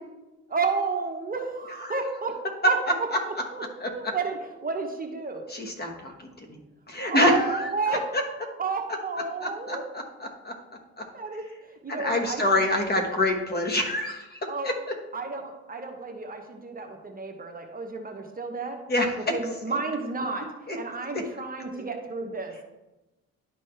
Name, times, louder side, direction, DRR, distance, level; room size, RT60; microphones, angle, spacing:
voice 1, 0.5-2.3 2.7-2.8 3.3-5.4 7.0-8.3 8.6-9.8 11.1-12.4 14.5-14.7 15.1-18.8 19.3-20.4 20.7-22.5, right 4 dB, 30° right, 2 dB, 1.0 m, -31 dB
voice 2, 3.8-4.1 5.5-6.1 6.5-6.6 6.9-8.2 9.4-10.5 11.0-11.1 11.9-14.7 18.9-19.1 20.7-20.8 21.1-21.2 21.7-21.8, left 1 dB, 30° left, 3 dB, 1.3 m, -26 dB
11.0 x 4.1 x 3.3 m, 1.0 s
cardioid pair, 90°, 30 cm